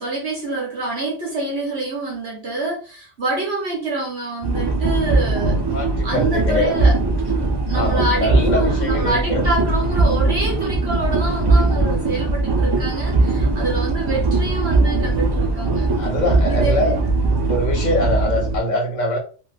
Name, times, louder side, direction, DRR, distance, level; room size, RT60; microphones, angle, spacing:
voice 1, 0.0-5.6 6.0-7.0 7.7-15.9 16.5-16.9, right 2 dB, 60° right, 1.1 m, -26 dB
sound 1, 4.4-18.6, right 3 dB, 35° right, 0.4 m, -20 dB
voice 2, 5.7-6.8 7.7-9.5 15.9-17.0 17.5-19.2, left 1 dB, 45° left, 0.8 m, -23 dB
3.0 x 2.6 x 2.4 m
omnidirectional pair, 1.2 m